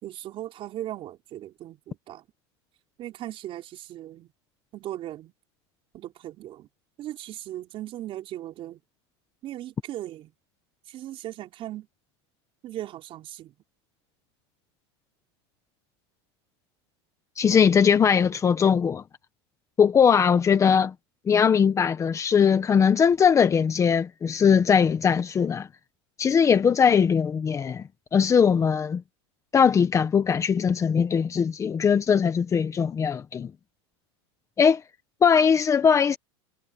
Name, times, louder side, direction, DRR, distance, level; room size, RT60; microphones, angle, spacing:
voice 1, 0.0-2.2 3.0-4.3 4.7-5.3 5.9-6.7 7.0-8.8 9.4-10.3 10.9-11.9 12.6-13.5, right 13 dB, 40° right, 4.8 m, -38 dB
voice 2, 17.4-19.0 19.8-20.9 21.3-25.7 26.2-27.8 28.1-29.0 29.5-33.5 34.6-34.8 35.2-36.2, left 7 dB, 20° left, 1.5 m, -20 dB
supercardioid pair, 135°, 14 cm